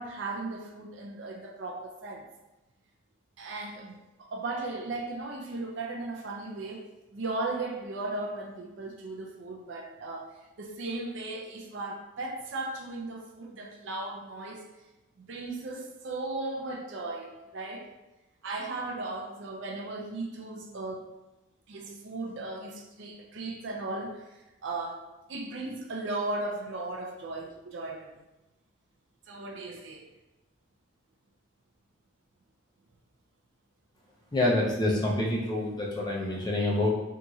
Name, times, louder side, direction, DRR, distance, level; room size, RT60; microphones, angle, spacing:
voice 1, 0.0-2.2 3.4-6.8 7.1-14.6 15.2-17.9 18.4-21.1 21.7-24.2 24.6-28.2 29.3-30.1, right 2 dB, 65° right, 2 dB, 0.4 m, -36 dB
voice 2, 34.3-36.9, left 1 dB, 20° left, -3 dB, 0.5 m, -27 dB
2.9 x 2.6 x 2.4 m, 1.0 s
head